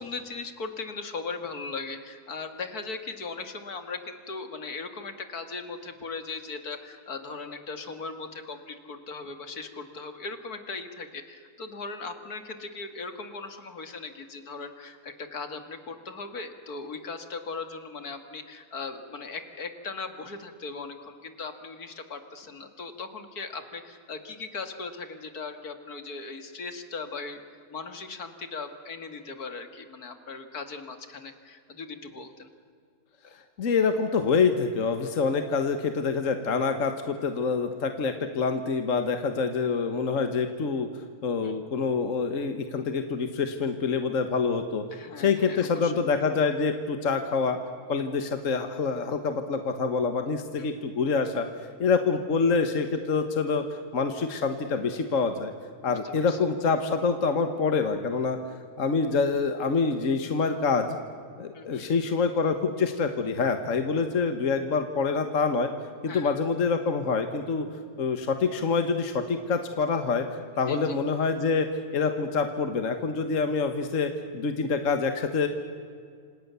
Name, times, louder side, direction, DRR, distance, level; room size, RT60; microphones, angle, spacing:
voice 1, 0.0-27.4 27.7-32.5 41.4-41.6 44.9-45.9 50.6-50.7 55.8-56.4 61.5-61.8 66.1-66.4 70.7-71.0, left 4 dB, 70° left, 7 dB, 2.5 m, -38 dB
voice 2, 33.6-40.9 41.2-44.8 45.2-47.6 47.9-51.5 51.8-53.6 53.9-55.5 55.8-58.4 58.8-61.0 61.4-65.7 66.0-67.7 68.0-70.3 70.6-71.7 71.9-75.5, left 4 dB, 55° left, 7 dB, 1.7 m, -26 dB
28.0 x 27.0 x 7.0 m, 2.2 s
omnidirectional pair, 1.7 m